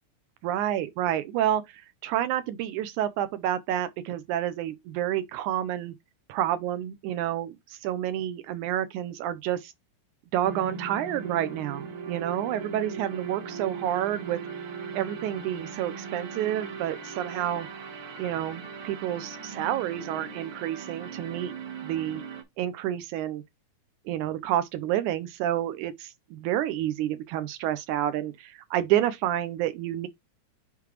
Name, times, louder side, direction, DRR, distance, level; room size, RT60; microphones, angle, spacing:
voice 1, 0.4-5.9 6.3-9.7 10.3-14.4 14.9-17.7 18.2-21.5 21.8-22.2 22.6-23.4 24.1-30.1, right 12 dB, 85° right, 2.2 m, -29 dB
sound 1, 10.4-22.4, right 5 dB, 50° right, 1.8 m, -39 dB
9.3 x 3.8 x 3.0 m
omnidirectional pair, 3.4 m